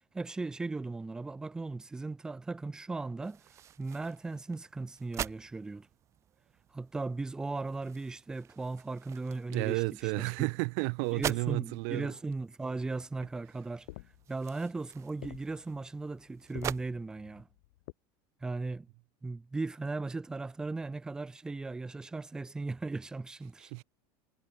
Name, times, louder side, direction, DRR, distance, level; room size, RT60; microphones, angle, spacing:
voice 1, 0.1-3.4 3.8-5.9 6.7-10.5 11.1-13.9 14.3-17.5 18.4-18.9 19.2-23.7, right 3 dB, 5° right, 0.4 m, -37 dB
sound 1, 3.2-16.8, right 11 dB, 25° right, 0.7 m, -45 dB
voice 2, 9.5-12.2 23.7-23.8, right 40 dB or more, 60° right, 0.6 m, -32 dB
sound 2, 13.8-17.9, left 21 dB, 85° left, 1.0 m, -51 dB
cardioid pair, 165°, 11 cm